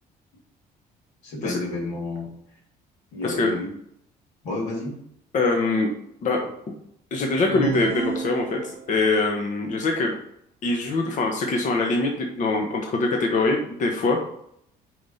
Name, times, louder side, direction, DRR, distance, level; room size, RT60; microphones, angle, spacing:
voice 1, 1.2-2.3 3.1-3.7 4.4-5.0, left 2 dB, 85° left, -2 dB, 2.9 m, -30 dB
voice 2, 5.3-5.9 6.2-6.5 7.1-10.2 10.6-14.2, left 3 dB, 45° left, 2 dB, 1.1 m, -23 dB
sound 1, 7.5-9.1, right 6 dB, 70° right, 0.6 m, -31 dB
5.1 x 4.8 x 5.5 m, 0.72 s
cardioid pair, 110°, 17 cm